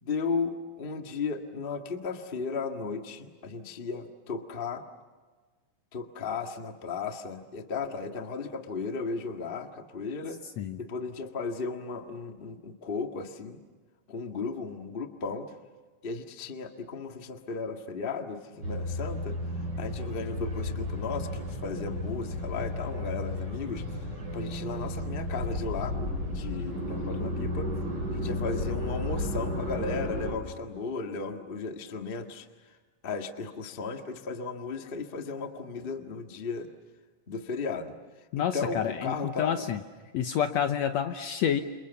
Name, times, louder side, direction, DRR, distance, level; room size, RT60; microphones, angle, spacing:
voice 1, 0.0-4.8 5.9-10.4 10.8-13.6 14.1-15.5 16.0-19.4 19.8-23.8 24.3-26.0 26.3-27.7 28.1-32.5 33.0-36.7 37.3-38.0 38.4-39.7, left 4 dB, 25° left, 4 dB, 1.2 m, -35 dB
sound 1, 18.6-30.3, left 1 dB, 30° right, 6.4 m, -33 dB
voice 2, 38.3-39.8 40.1-41.6, left 9 dB, 65° left, 7 dB, 1.9 m, -28 dB
29.0 x 28.5 x 7.1 m, 1.4 s
omnidirectional pair, 3.8 m